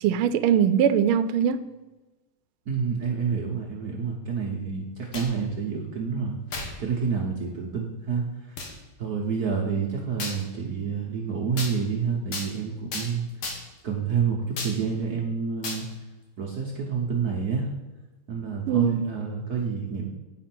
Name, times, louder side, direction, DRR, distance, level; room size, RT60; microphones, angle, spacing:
voice 1, 0.0-1.6 18.7-19.1, right 8 dB, 90° right, 13 dB, 1.5 m, -21 dB
voice 2, 2.7-6.4 6.8-8.6 9.0-13.3 13.8-15.9 16.4-17.7 18.3-20.1, right 6 dB, 55° right, -1 dB, 1.4 m, -28 dB
sound 1, 4.9-5.4 6.5-6.8 7.4-7.5 8.6-8.7 10.2-10.4 11.6-11.7 12.3-12.5 12.9-13.1 13.4-13.8 14.6-14.8 15.6-15.8, left 3 dB, 80° left, 2.3 m, -33 dB
9.0 x 5.0 x 6.0 m, 1.2 s
omnidirectional pair, 2.3 m